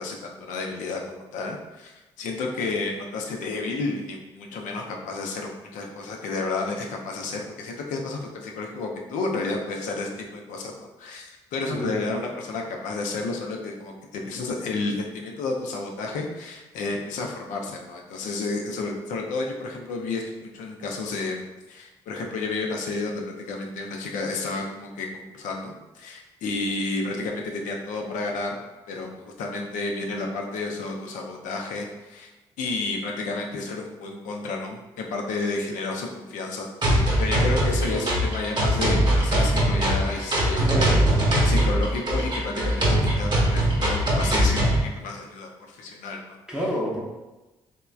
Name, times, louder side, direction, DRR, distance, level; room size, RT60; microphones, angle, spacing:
voice 1, 0.0-21.4 21.7-28.6 28.9-29.1 29.4-32.3 32.6-40.8 41.4-46.4, left 3 dB, 70° left, 1 dB, 0.5 m, -31 dB
voice 2, 11.7-12.0 37.9-38.2 40.6-41.3 46.5-47.0, equal, 5° right, -5 dB, 0.7 m, -29 dB
sound 1, 36.8-44.8, right 1 dB, 35° right, 0.9 m, -21 dB
3.0 x 2.1 x 2.3 m, 1.1 s
hypercardioid pair, 45°, 14 cm